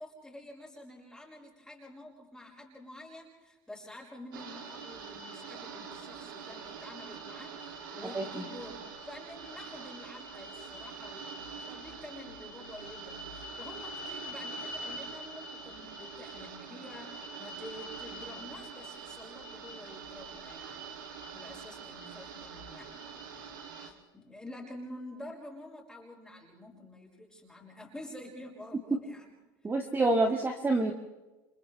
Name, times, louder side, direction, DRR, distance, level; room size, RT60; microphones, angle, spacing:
voice 1, 0.0-7.5 7.9-20.9 21.2-23.5 23.8-29.3 29.9-30.0, left 1 dB, 5° left, -3 dB, 5.8 m, -48 dB
sound 1, 4.3-23.9, right 4 dB, 85° right, 3.0 m, -44 dB
voice 2, 29.6-30.9, right 2 dB, 20° right, 3 dB, 1.9 m, -27 dB
30.0 x 26.5 x 3.5 m, 1.1 s
supercardioid pair, 95°, 11 cm